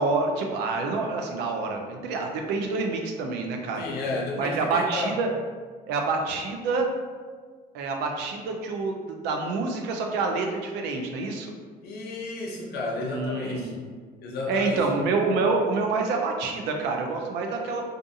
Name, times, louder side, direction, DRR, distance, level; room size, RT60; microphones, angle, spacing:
voice 1, 0.0-3.8 4.4-5.3 5.9-6.9 7.7-11.5 13.0-13.8 14.5-17.8, right 3 dB, 90° right, 2 dB, 0.4 m, -27 dB
voice 2, 3.8-5.2 11.8-13.7 14.2-15.0, left 2 dB, 70° left, -1 dB, 0.6 m, -32 dB
2.5 x 2.4 x 2.6 m, 1.5 s
cardioid pair, 110°, 17 cm